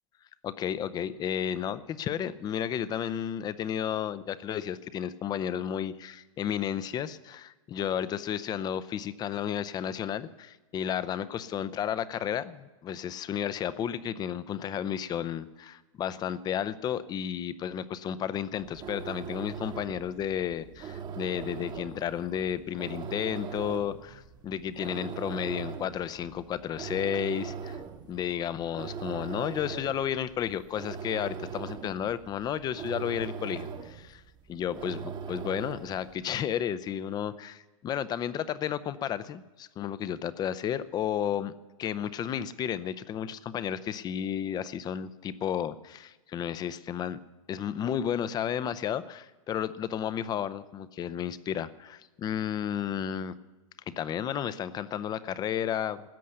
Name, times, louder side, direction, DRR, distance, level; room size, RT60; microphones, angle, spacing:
voice 1, 0.4-27.8 28.1-34.2 34.5-41.5 41.8-47.2 47.5-53.3 53.9-56.0, left 9 dB, 25° left, 16 dB, 0.6 m, -32 dB
sound 1, 18.5-36.1, right 6 dB, 25° right, 1.1 m, -40 dB
13.5 x 8.4 x 9.7 m, 1.1 s
hypercardioid pair, 110°, 18 cm